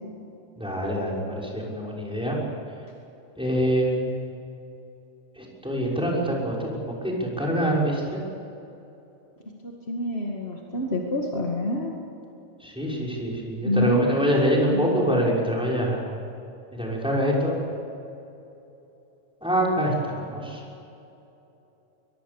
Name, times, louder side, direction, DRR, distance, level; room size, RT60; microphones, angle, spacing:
voice 1, 0.6-2.4 3.4-4.3 5.6-8.2 12.6-16.0 16.7-17.6 19.4-20.5, equal, ahead, -3 dB, 6.1 m, -25 dB
voice 2, 9.6-12.0 13.6-14.2 14.6-15.2, left 1 dB, 25° left, 0 dB, 1.8 m, -27 dB
23.0 x 23.0 x 7.2 m, 2.8 s
omnidirectional pair, 3.7 m